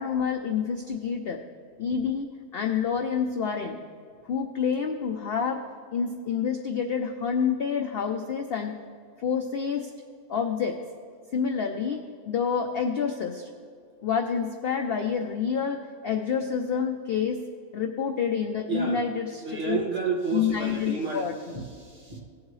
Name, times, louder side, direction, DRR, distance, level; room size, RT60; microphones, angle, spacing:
voice 1, 0.0-1.4 1.8-3.8 4.2-5.7 5.9-8.8 9.2-9.9 10.3-10.8 11.3-13.5 14.0-17.4 17.7-19.8 20.3-21.6, left 6 dB, 60° left, 4 dB, 0.6 m, -28 dB
voice 2, 18.7-19.0 19.4-22.2, right 4 dB, 35° right, -3 dB, 2.0 m, -31 dB
18.0 x 7.4 x 3.2 m, 2.3 s
omnidirectional pair, 1.6 m